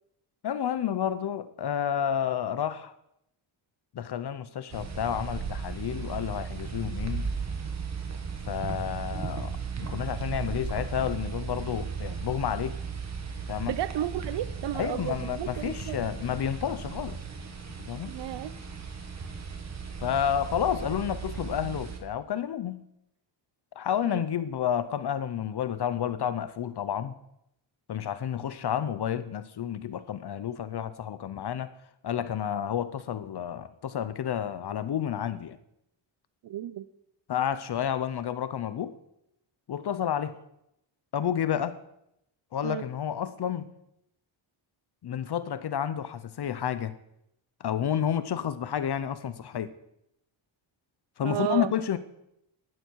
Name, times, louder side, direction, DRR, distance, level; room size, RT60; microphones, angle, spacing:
voice 1, 0.4-2.9 3.9-7.3 8.5-12.8 13.5-13.7 14.7-17.2 17.9-18.2 20.0-22.8 23.8-27.1 27.9-31.7 32.0-35.6 37.3-38.9 39.7-40.3 41.1-41.8 42.5-43.7 45.0-46.9 47.6-49.7 51.2-52.0, left 9 dB, 55° left, 13 dB, 0.9 m, -30 dB
sound 1, 4.7-22.0, right 5 dB, 35° right, 1.9 m, -36 dB
voice 2, 13.6-16.0 18.1-18.5 24.0-24.3 36.4-36.9 42.6-42.8 51.2-51.7, right 12 dB, 65° right, 15 dB, 0.7 m, -33 dB
17.5 x 12.5 x 4.7 m, 0.79 s
wide cardioid pair, 160°, 47 cm